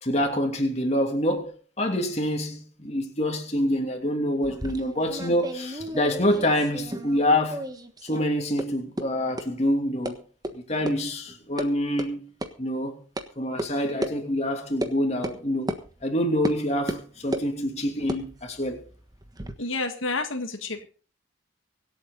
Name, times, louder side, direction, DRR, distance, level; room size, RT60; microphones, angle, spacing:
voice 1, 0.0-7.6 8.0-10.2 10.5-12.2 12.6-13.0 13.4-15.7 16.0-18.8, left 1 dB, 35° left, 2.9 m, -26 dB
sound 1, 4.4-7.2 7.5-8.2 8.6-8.7 9.0-9.1 9.4-9.5 10.1-10.2 10.4-10.5 10.9-11.0 11.3-11.7 12.0-12.1 12.4-12.5 13.2-13.3 13.6-13.7 14.0-14.1 14.8-14.9 15.2-15.4 15.7-15.8 16.4-16.6 16.9-17.5 18.0-19.5, right 1 dB, 20° right, 1.4 m, -33 dB
voice 2, 19.6-20.9, left 3 dB, 85° left, 1.8 m, -29 dB
25.0 x 8.4 x 4.0 m
head